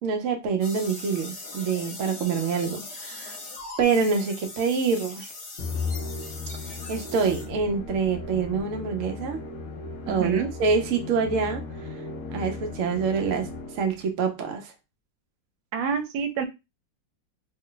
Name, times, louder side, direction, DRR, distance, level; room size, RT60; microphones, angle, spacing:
voice 1, 0.0-3.4 3.8-5.3 6.9-9.4 10.1-11.6 12.3-13.5 13.7-14.7, right 5 dB, 65° right, 0.7 m, -26 dB
sound 1, 0.6-8.6, left 3 dB, 45° left, 1.1 m, -41 dB
Musical instrument, 5.6-14.1, left 4 dB, 80° left, 0.6 m, -36 dB
voice 2, 10.1-10.5 15.7-16.5, right 6 dB, 80° right, 1.3 m, -28 dB
3.1 x 2.2 x 3.7 m
omnidirectional pair, 2.1 m